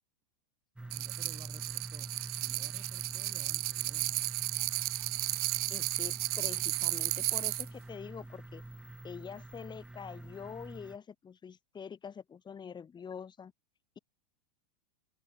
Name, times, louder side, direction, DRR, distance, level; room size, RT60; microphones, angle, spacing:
sound 1, 0.8-11.0, right 2 dB, 5° right, 0.9 m, -46 dB
voice 1, 0.8-2.2 2.4-4.1, right 9 dB, 25° right, 1.6 m, -56 dB
sound 2, 0.9-7.7, right 19 dB, 65° right, 0.9 m, -34 dB
voice 2, 5.7-8.6 9.0-13.5, left 7 dB, 20° left, 3.2 m, -45 dB
hypercardioid pair, 110°, 21 cm